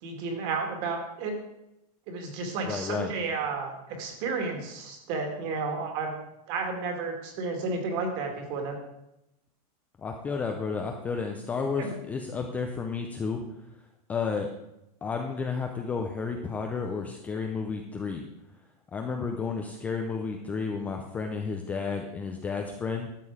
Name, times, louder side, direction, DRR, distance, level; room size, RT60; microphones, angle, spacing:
voice 1, 0.0-1.3 2.1-6.1 6.5-8.8 11.8-11.9, right 4 dB, 35° right, 3 dB, 2.1 m, -32 dB
voice 2, 2.6-3.1 10.0-13.4 14.1-14.5 15.0-18.2 18.9-23.1, left 5 dB, 5° left, 3 dB, 0.4 m, -32 dB
12.5 x 7.5 x 4.8 m, 0.86 s
supercardioid pair, 180°, 20 cm